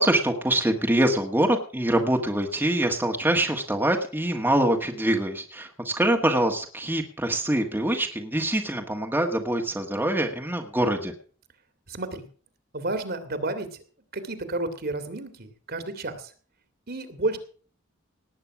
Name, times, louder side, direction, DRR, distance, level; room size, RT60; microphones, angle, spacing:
voice 1, 0.0-11.1, right 1 dB, 10° right, 2 dB, 1.5 m, -24 dB
voice 2, 11.9-12.2 12.7-13.8 14.1-16.3 16.9-17.4, right 2 dB, 50° right, 9 dB, 2.2 m, -31 dB
18.5 x 8.9 x 5.9 m, 0.43 s
head